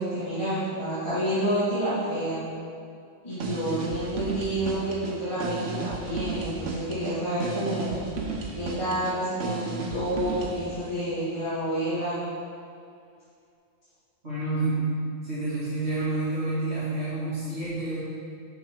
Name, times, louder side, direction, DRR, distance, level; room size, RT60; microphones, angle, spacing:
voice 1, 0.0-2.4 3.2-8.0 8.5-12.2, right 1 dB, 25° left, -13 dB, 1.7 m, -29 dB
sound 1, 3.3-10.7, right 3 dB, 70° right, 1.2 m, -34 dB
voice 2, 14.2-14.9 15.2-18.0, right 2 dB, 55° right, -10 dB, 2.4 m, -29 dB
6.8 x 5.9 x 5.0 m, 2.4 s
omnidirectional pair, 1.3 m